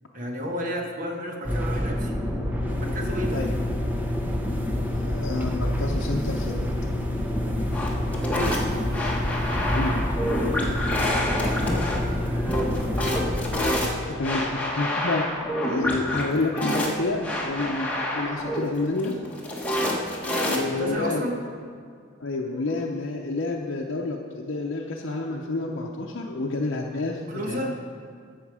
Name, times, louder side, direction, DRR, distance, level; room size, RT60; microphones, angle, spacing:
voice 1, 0.1-2.1 2.7-3.5 8.0-8.6 12.2-13.1 13.6-14.2 20.5-21.4 27.3-27.8, equal, 40° right, 1 dB, 1.4 m, -33 dB
sound 1, 1.4-13.8, left 1 dB, 10° right, 0.8 m, -27 dB
voice 2, 4.9-6.7 9.7-10.1 14.1-15.4 15.6-19.2 20.4-21.2 22.2-27.6, left 2 dB, 70° left, -1 dB, 0.7 m, -29 dB
sound 2, 7.7-20.9, left 1 dB, 5° left, 1.3 m, -27 dB
15.5 x 6.5 x 4.9 m, 2.1 s
head